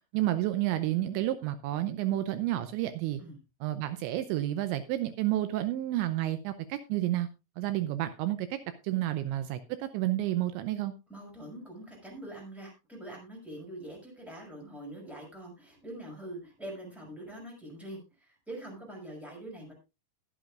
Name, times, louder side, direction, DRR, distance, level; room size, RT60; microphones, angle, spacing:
voice 1, 0.1-3.2 3.6-7.3 7.6-8.6 8.8-10.9, right 14 dB, 80° right, 10 dB, 2.9 m, -30 dB
voice 2, 11.1-19.7, right 1 dB, ahead, -1 dB, 5.2 m, -44 dB
21.0 x 8.3 x 2.4 m, 0.27 s
omnidirectional pair, 5.4 m